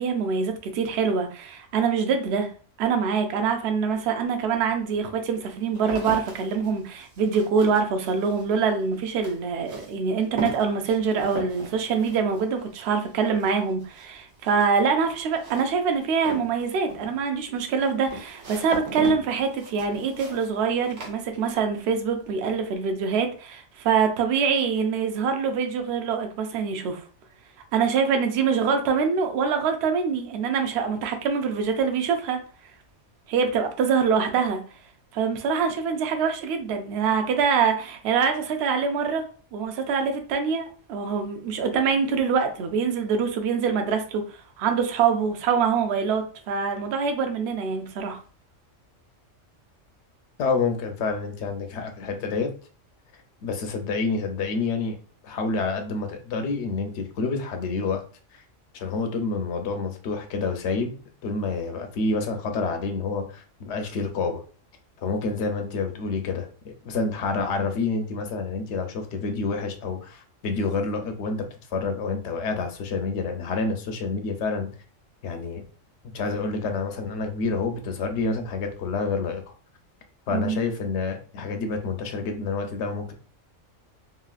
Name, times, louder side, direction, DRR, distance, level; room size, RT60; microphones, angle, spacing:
voice 1, 0.0-2.5 2.8-27.0 27.7-32.4 33.3-34.6 35.1-39.2 39.5-44.2 44.6-48.2 80.3-80.6, right 6 dB, 65° right, 0.7 m, -24 dB
sound 1, 3.9-4.0 4.7-21.9 22.2-22.7, right 1 dB, 80° right, 1.3 m, -39 dB
voice 2, 50.4-52.5 53.4-55.0 55.2-58.0 58.7-60.9 61.2-64.4 65.0-71.4 71.7-74.7 75.2-75.6 76.1-79.4 80.3-83.1, left 4 dB, 65° left, 0.8 m, -28 dB
2.9 x 2.7 x 2.3 m
omnidirectional pair, 1.3 m